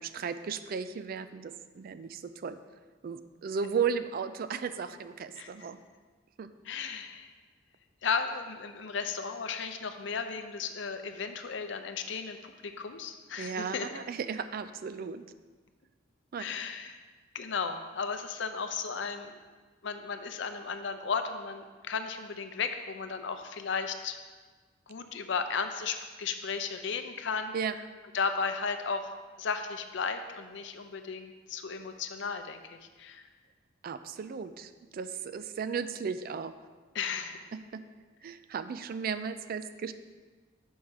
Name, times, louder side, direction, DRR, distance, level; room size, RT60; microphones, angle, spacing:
voice 1, 0.0-2.6 3.0-5.8 6.4-6.5 13.4-15.2 16.3-16.4 27.5-27.7 33.8-36.5 37.7-37.8 38.2-39.9, right 6 dB, 45° right, 11 dB, 0.3 m, -35 dB
voice 2, 6.7-7.3 8.0-13.9 16.4-17.0 17.3-19.4 19.8-24.2 24.9-27.5 28.1-29.1 29.4-33.2 36.9-37.4, left 5 dB, 65° left, 8 dB, 0.5 m, -35 dB
6.3 x 5.7 x 4.6 m, 1.4 s
head